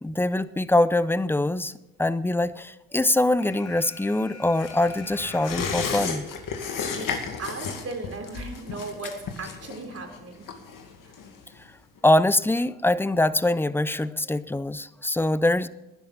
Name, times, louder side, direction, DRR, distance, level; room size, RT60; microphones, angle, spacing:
voice 1, 0.0-1.7 2.0-6.2 12.0-15.7, left 1 dB, 5° left, 17 dB, 0.6 m, -23 dB
Alarm, 3.4-6.4, left 5 dB, 75° left, 2.4 m, -46 dB
sound 1, 4.6-11.7 12.0-12.1, left 5 dB, 55° left, 2.3 m, -33 dB
voice 2, 7.4-10.5, right 3 dB, 40° right, 3 dB, 3.5 m, -37 dB
19.0 x 10.5 x 4.1 m, 1.0 s
hypercardioid pair, 60°, 39 cm